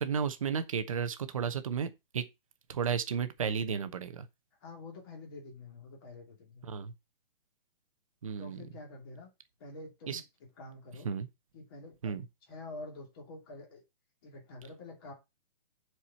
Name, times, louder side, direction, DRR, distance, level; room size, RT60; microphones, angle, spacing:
voice 1, 0.0-2.2 2.7-4.2 6.6-6.9 8.2-8.6 10.1-10.2 11.0-11.3 12.0-12.2, right 7 dB, 35° right, 1.0 m, -33 dB
voice 2, 4.6-6.6 8.4-9.3 9.6-11.1 11.5-12.1 12.5-13.8 14.2-15.1, left 2 dB, 25° left, 2.6 m, -47 dB
7.4 x 4.7 x 5.6 m
hypercardioid pair, 180°, 29 cm